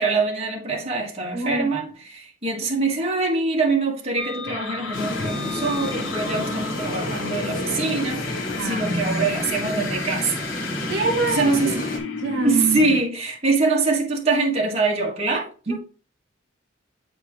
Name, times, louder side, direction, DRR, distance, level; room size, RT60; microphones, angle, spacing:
voice 1, 0.0-10.4 11.3-11.9 12.4-15.8, right 3 dB, 35° right, 1.5 m, -24 dB
voice 2, 1.3-1.7 8.6-9.2 10.9-13.0 15.7-15.8, right 3 dB, 60° right, 1.5 m, -26 dB
sound 1, 4.2-13.0, left 4 dB, 80° left, 0.8 m, -33 dB
sound 2, 4.9-12.0, left 1 dB, 45° left, 1.7 m, -30 dB
8.3 x 4.4 x 3.1 m
head